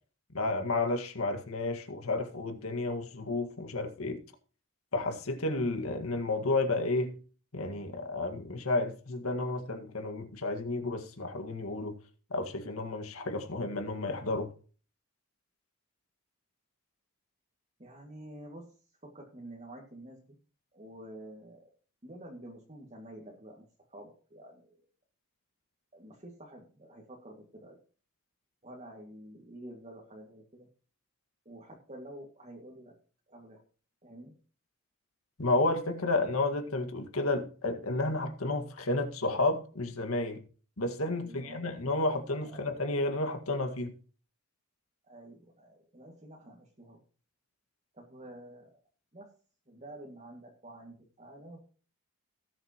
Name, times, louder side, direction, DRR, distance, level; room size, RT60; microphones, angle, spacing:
voice 1, 0.3-4.2 4.9-7.2 7.5-12.0 12.3-14.5 35.4-40.4 40.8-43.9, left 2 dB, 90° left, 1.9 m, -31 dB
voice 2, 17.8-18.8 19.0-20.4 20.7-21.7 22.0-24.8 25.9-27.8 28.6-30.7 31.5-33.0 33.3-33.6 34.0-34.3 41.1-41.7 42.4-42.7 45.0-47.0 47.9-48.7 49.1-49.3 49.7-51.6, right 1 dB, 30° right, 2.2 m, -49 dB
19.0 x 7.8 x 3.0 m
head